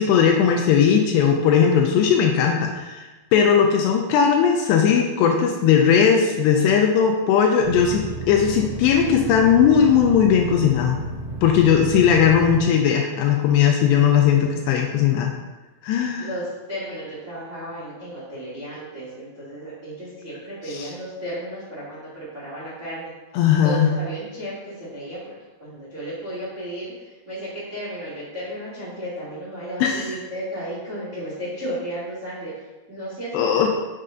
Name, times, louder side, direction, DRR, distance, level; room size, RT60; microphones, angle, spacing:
voice 1, 0.0-11.0 11.4-15.3 15.8-16.3 20.7-20.9 23.3-23.9 29.8-30.0 33.3-33.7, left 7 dB, 85° left, 2 dB, 2.6 m, -18 dB
sound 1, 7.6-12.6, right 2 dB, 25° right, 2.0 m, -32 dB
voice 2, 16.2-23.1 23.6-25.3 25.6-33.7, right 1 dB, 70° right, -7 dB, 0.7 m, -34 dB
6.6 x 6.6 x 3.8 m, 1.2 s
omnidirectional pair, 5.3 m